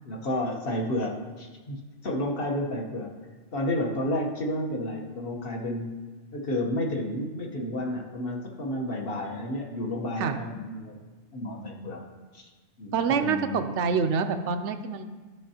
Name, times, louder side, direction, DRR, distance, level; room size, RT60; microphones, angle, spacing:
voice 1, 0.0-3.1 3.5-6.0 6.3-11.0 11.3-12.0 12.3-12.5 12.8-13.6, left 1 dB, 55° left, 0 dB, 1.2 m, -31 dB
voice 2, 12.9-15.0, right 5 dB, 80° right, 8 dB, 0.9 m, -26 dB
13.0 x 5.5 x 2.8 m, 1.3 s
omnidirectional pair, 1.2 m